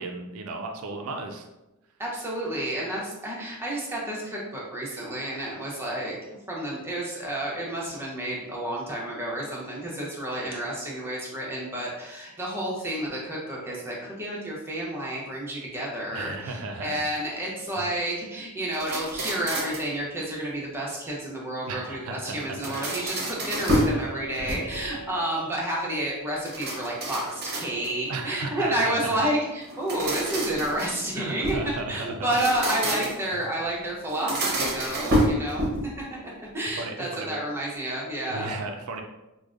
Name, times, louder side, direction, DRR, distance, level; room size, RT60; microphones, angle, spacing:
voice 1, 0.0-1.5 16.1-17.0 17.8-17.9 21.7-22.8 23.8-24.1 28.1-29.3 31.2-32.4 33.3-33.4 36.8-37.4 38.3-39.0, right 3 dB, 65° right, 4 dB, 0.3 m, -35 dB
voice 2, 2.0-6.2 6.5-31.6 31.9-35.9 36.2-38.5, right 1 dB, 10° right, -4 dB, 0.7 m, -30 dB
sound 1, 18.7-19.9 22.4-24.0 24.3-25.0 26.4-28.1 29.6-31.7 32.2-33.3 34.1-35.9, right 1 dB, 45° right, 0.7 m, -28 dB
Wind instrument woodwind instrument, 23.8-28.8, right 4 dB, 65° left, 0.8 m, -46 dB
4.8 x 2.1 x 2.5 m, 0.99 s
head